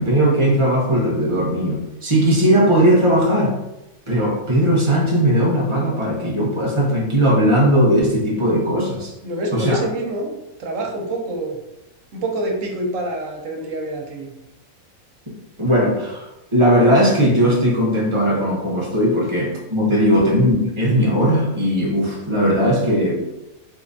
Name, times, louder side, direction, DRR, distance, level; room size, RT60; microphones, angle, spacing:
voice 1, 0.0-3.6 4.1-9.1 9.5-9.8 15.6-23.2, equal, 25° right, -3 dB, 0.8 m, -18 dB
voice 2, 9.2-11.6 12.1-14.3, right 1 dB, 70° right, 1 dB, 1.1 m, -26 dB
3.4 x 3.3 x 2.6 m, 0.94 s
omnidirectional pair, 1.5 m